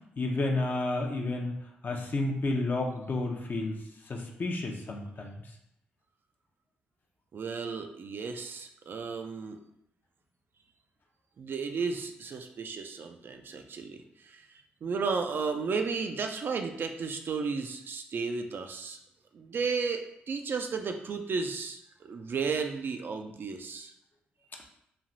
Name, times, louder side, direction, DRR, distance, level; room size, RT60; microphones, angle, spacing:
voice 1, 0.2-1.5 1.8-3.8 4.1-5.4, left 2 dB, 45° left, 1 dB, 0.6 m, -31 dB
voice 2, 7.3-9.6 11.4-19.0 19.3-23.9, right 5 dB, 55° right, 5 dB, 0.3 m, -34 dB
3.2 x 2.3 x 2.6 m, 0.76 s
supercardioid pair, 50°, 4 cm